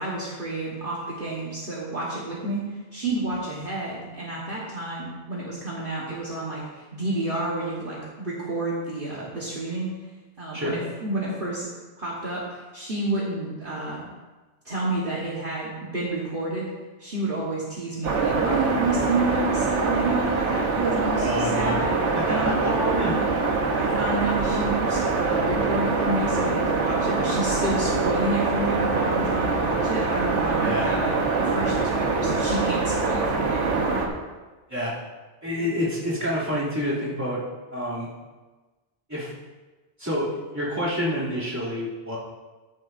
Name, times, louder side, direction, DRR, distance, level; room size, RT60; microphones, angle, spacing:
voice 1, 0.0-9.9 10.4-14.1 14.7-16.7 17.0-23.3 23.8-34.0 35.6-35.8, right 2 dB, 50° right, -6 dB, 1.6 m, -30 dB
sound 1, 18.0-34.1, right 4 dB, 75° right, 1.4 m, -24 dB
voice 2, 21.2-21.8 22.1-22.7 23.0-23.1 30.6-30.9 34.7-35.0 35.4-37.4 37.7-38.1 39.1-39.3 40.0-42.2, equal, 15° right, -9 dB, 2.9 m, -28 dB
14.0 x 7.5 x 2.7 m, 1.2 s
omnidirectional pair, 1.2 m